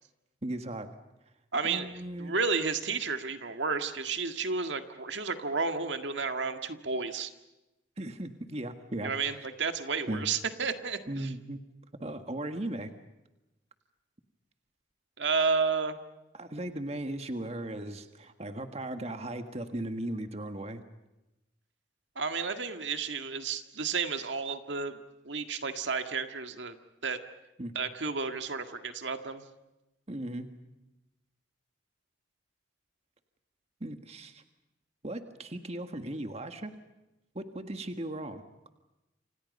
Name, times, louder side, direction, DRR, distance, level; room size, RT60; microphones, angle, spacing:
voice 1, 0.4-0.9 1.6-2.3 8.0-9.1 10.1-10.3 11.1-11.6 12.0-12.9 16.3-20.8 27.6-27.7 30.1-30.5 33.8-34.4 35.0-36.7 37.3-38.4, right 1 dB, 35° right, 7 dB, 1.6 m, -37 dB
voice 2, 1.5-1.9 2.2-7.3 9.0-11.3 15.2-16.0 22.1-25.0 25.2-26.7 27.0-27.2 27.7-29.4, right 4 dB, 70° right, 7 dB, 1.9 m, -31 dB
29.5 x 27.0 x 5.4 m, 0.96 s
head